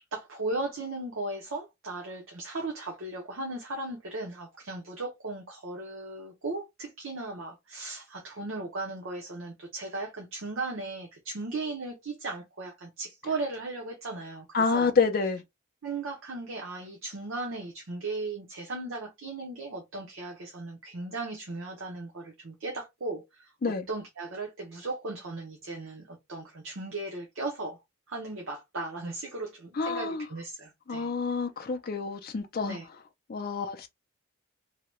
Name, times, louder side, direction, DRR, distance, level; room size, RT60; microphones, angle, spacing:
voice 1, 0.1-14.9 15.8-27.8 28.1-31.1 32.7-32.9, right 2 dB, 60° right, 0.7 m, -37 dB
voice 2, 14.5-15.4 23.6-23.9 29.8-30.2 30.9-32.8 33.3-33.9, left 4 dB, 40° left, 0.4 m, -28 dB
2.8 x 2.2 x 3.0 m
head